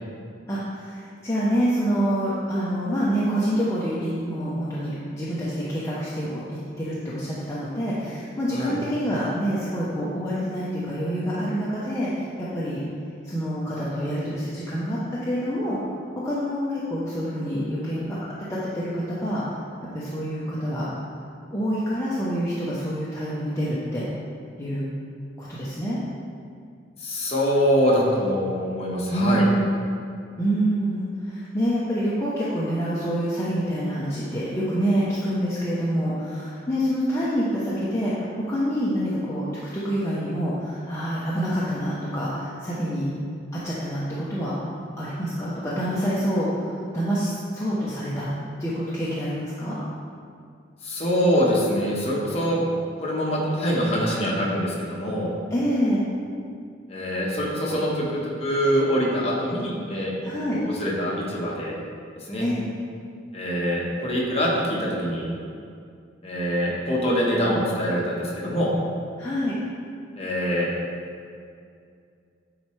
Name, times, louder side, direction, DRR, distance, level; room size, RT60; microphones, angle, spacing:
voice 1, 0.5-12.8 13.2-15.8 16.1-18.2 18.5-19.4 19.9-20.9 21.5-24.1 24.6-24.8 25.4-26.0 29.1-29.8 30.4-39.5 39.7-43.1 43.5-44.5 45.0-48.3 48.6-49.8 55.5-56.0 60.2-60.6 62.4-62.6 69.2-69.6, equal, 15° left, -9 dB, 0.8 m, -26 dB
voice 2, 27.0-29.5 50.8-52.6 53.0-55.3 56.9-60.3 60.8-61.8 62.3-62.4 63.3-65.3 66.2-68.7 70.2-70.7, equal, 35° left, -5 dB, 1.2 m, -24 dB
9.4 x 4.3 x 3.2 m, 2.3 s
head